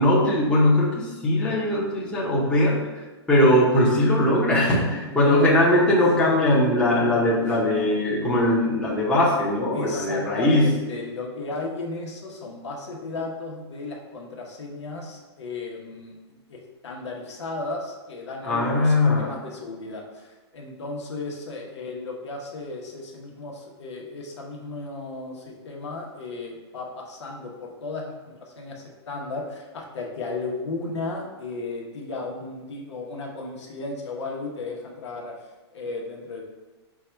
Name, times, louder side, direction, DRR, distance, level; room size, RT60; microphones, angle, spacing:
voice 1, 0.0-2.8 3.3-10.7 18.5-19.3, left 1 dB, 5° left, -6 dB, 0.9 m, -20 dB
voice 2, 5.0-5.6 6.0-6.2 7.5-7.9 9.7-16.1 16.5-35.3 35.7-36.4, left 3 dB, 80° left, -1 dB, 1.0 m, -35 dB
4.7 x 2.4 x 4.4 m, 1.2 s
hypercardioid pair, 145°, 14 cm